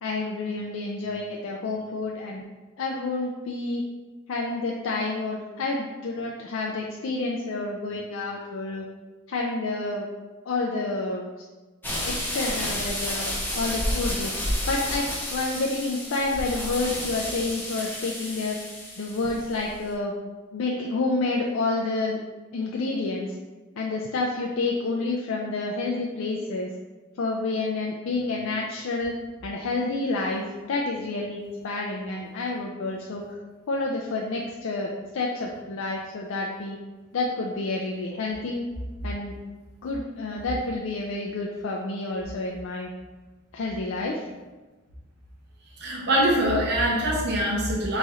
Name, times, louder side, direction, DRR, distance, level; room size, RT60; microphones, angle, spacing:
voice 1, 0.0-2.4 2.8-3.8 4.3-8.9 9.3-10.1 10.4-11.3 12.0-13.3 13.6-14.3 14.6-18.6 19.0-20.2 20.5-22.2 22.5-23.4 23.8-26.7 27.2-29.1 29.4-33.2 33.7-36.8 37.1-38.6 39.0-39.4 39.8-42.9 43.5-44.3, left 3 dB, 65° left, -1 dB, 0.4 m, -29 dB
sound 1, 11.8-19.8, left 1 dB, 10° left, 0.7 m, -31 dB
voice 2, 45.8-48.0, right 1 dB, 55° right, -4 dB, 0.8 m, -23 dB
4.0 x 3.1 x 3.6 m, 1.2 s
head